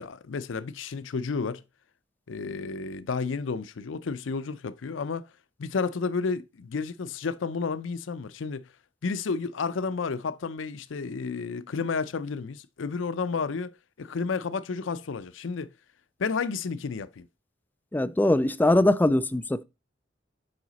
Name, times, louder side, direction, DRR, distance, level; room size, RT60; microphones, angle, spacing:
voice 1, 0.0-1.6 2.3-5.2 5.6-8.7 9.0-15.7 16.2-17.3, left 4 dB, 85° left, 0.5 m, -31 dB
voice 2, 17.9-19.6, left 1 dB, 10° left, 0.4 m, -22 dB
7.6 x 4.9 x 4.0 m
head